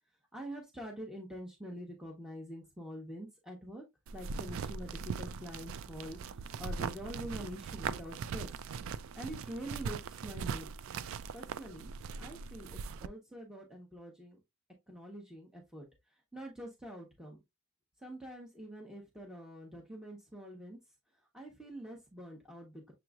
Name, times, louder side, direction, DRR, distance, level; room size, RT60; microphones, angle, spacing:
voice 1, 0.3-3.8 4.1-8.5 9.1-10.7 11.3-11.9 12.2-14.4 14.9-15.8 16.3-17.4 18.0-20.8 21.3-22.9, equal, 5° right, 0.8 m, -45 dB
sound 1, 4.1-13.1, right 6 dB, 60° right, 0.3 m, -40 dB
6.9 x 3.0 x 2.3 m
head